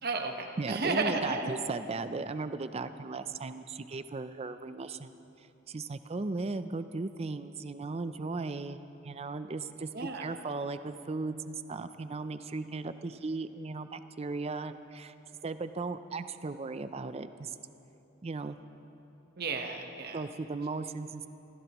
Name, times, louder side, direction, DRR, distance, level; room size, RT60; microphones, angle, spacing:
voice 1, 0.0-1.6 9.9-10.3 19.4-20.2, right 3 dB, 50° right, 4 dB, 1.1 m, -33 dB
voice 2, 0.6-5.2 5.7-15.1 15.4-17.6 18.2-18.6 20.1-21.3, right 3 dB, 30° right, 11 dB, 0.5 m, -37 dB
25.0 x 15.5 x 3.0 m, 3.0 s
head